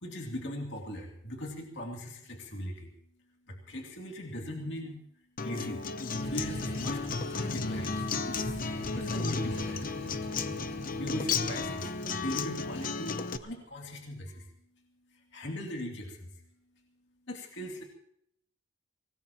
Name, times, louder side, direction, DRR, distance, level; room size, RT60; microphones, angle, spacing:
voice 1, 0.0-2.9 3.5-5.0 5.4-5.8 6.2-8.6 8.9-9.9 10.9-14.5 15.3-16.3 17.3-17.8, equal, 65° left, 0 dB, 2.7 m, -39 dB
Acoustic guitar, 5.4-13.4, left 4 dB, 45° left, 0.8 m, -34 dB
sound 1, 6.0-13.4, equal, 85° left, 4.8 m, -41 dB
24.5 x 19.0 x 3.0 m, 0.73 s
head